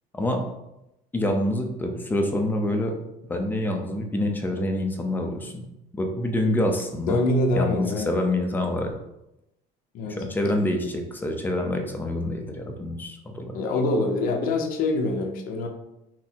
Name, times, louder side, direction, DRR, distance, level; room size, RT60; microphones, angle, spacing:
voice 1, 1.1-2.9 3.3-5.6 5.9-7.2 7.5-8.9 10.1-13.6, left 1 dB, 10° left, 3 dB, 0.5 m, -26 dB
voice 2, 7.1-8.2 9.9-10.2 13.5-15.7, left 2 dB, 60° left, 3 dB, 0.7 m, -25 dB
5.9 x 2.0 x 4.4 m, 0.88 s
cardioid pair, 160°, 16 cm